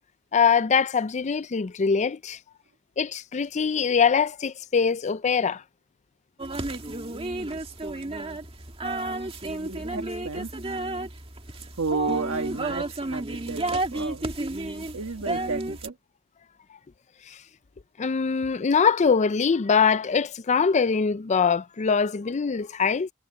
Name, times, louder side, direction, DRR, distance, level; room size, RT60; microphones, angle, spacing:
voice 1, 0.3-2.4 3.0-5.6 18.0-23.1, left 6 dB, 35° left, 0.4 m, -23 dB
sound 1, 6.4-15.9, right 2 dB, 25° right, 2.0 m, -32 dB
voice 2, 9.5-10.6 11.8-14.3 14.9-15.9, right 4 dB, 75° right, 1.5 m, -32 dB
head